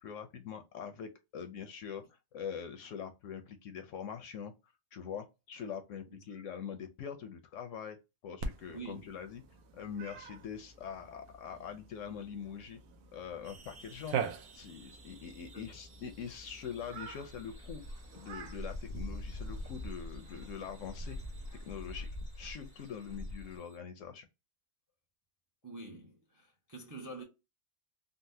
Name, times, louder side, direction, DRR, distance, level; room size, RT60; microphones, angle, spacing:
voice 1, 0.0-4.5 4.9-8.0 8.2-9.4 9.7-12.8 13.1-14.2 14.5-21.2 21.5-22.1 22.4-24.3, left 7 dB, 70° left, 0.8 m, -43 dB
Cat, 8.4-22.1, right 6 dB, 85° right, 1.1 m, -45 dB
voice 2, 8.7-9.1 15.5-15.6 25.6-27.2, right 3 dB, 30° right, 0.4 m, -46 dB
sound 1, 13.4-23.8, right 4 dB, 65° right, 1.2 m, -60 dB
Dog / Bird, 17.3-23.6, left 1 dB, 50° left, 0.4 m, -44 dB
4.0 x 2.1 x 2.6 m
omnidirectional pair, 1.6 m